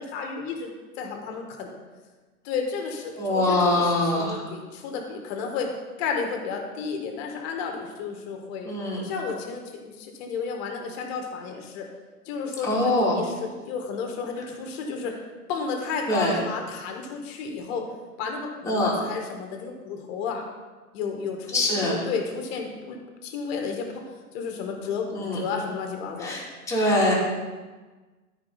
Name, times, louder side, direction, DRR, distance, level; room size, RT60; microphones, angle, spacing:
voice 1, 0.0-1.7 2.4-8.7 9.0-11.9 12.2-15.1 15.5-17.9 18.2-20.5 20.9-24.0 24.3-26.5, left 5 dB, 45° left, 3 dB, 1.6 m, -32 dB
voice 2, 3.2-4.4 8.6-9.0 12.6-13.2 16.1-16.3 18.7-18.9 21.5-22.0 25.1-25.4 26.2-26.4 26.7-27.1, left 1 dB, 5° left, -6 dB, 2.7 m, -23 dB
13.0 x 5.0 x 4.0 m, 1.3 s
figure-of-eight pair, 100°, 45 cm